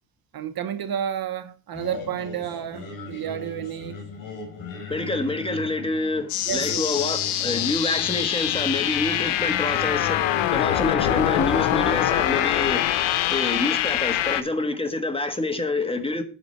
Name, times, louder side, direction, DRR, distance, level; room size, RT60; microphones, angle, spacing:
voice 1, 0.3-4.0 6.5-6.9 7.4-7.7, right 9 dB, 50° right, 1.0 m, -31 dB
Singing, 1.7-12.8, left 5 dB, 50° left, 4.2 m, -39 dB
voice 2, 4.9-12.9 13.3-16.2, left 2 dB, 10° left, 1.5 m, -27 dB
sound 1, 6.3-14.4, left 13 dB, 90° left, 0.9 m, -24 dB
8.9 x 4.9 x 6.7 m
cardioid pair, 90°, 45 cm